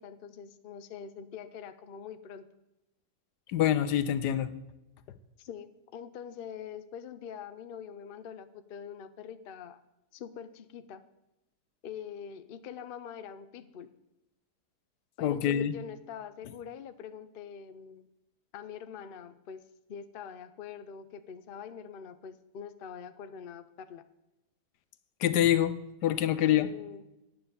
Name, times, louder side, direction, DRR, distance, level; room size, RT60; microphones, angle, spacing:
voice 1, 0.0-2.5 5.4-9.8 10.1-11.0 11.8-13.9 15.2-18.1 18.5-24.0 26.5-27.0, left 7 dB, 50° left, 11 dB, 0.6 m, -44 dB
voice 2, 3.5-4.5 15.2-15.7 25.2-25.7 26.0-26.7, left 11 dB, 85° left, 14 dB, 1.3 m, -25 dB
9.9 x 8.8 x 6.9 m, 0.93 s
omnidirectional pair, 1.7 m